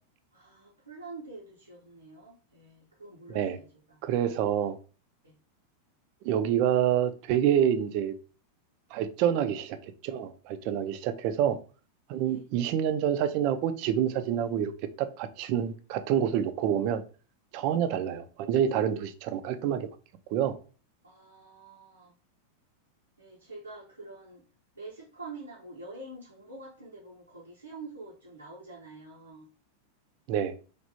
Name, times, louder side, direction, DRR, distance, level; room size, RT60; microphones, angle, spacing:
voice 1, 0.3-4.6 5.2-5.3 12.2-12.4 17.6-17.8 21.0-22.1 23.2-24.4 24.7-29.5, right 3 dB, 85° right, 0.7 m, -46 dB
voice 2, 4.0-4.8 6.2-8.1 8.9-11.6 12.1-14.7 15.0-17.0 17.5-19.9 20.3-20.6 30.3-30.5, right 9 dB, 45° right, 0.4 m, -27 dB
3.2 x 2.5 x 2.7 m
figure-of-eight pair, 90°, 0 cm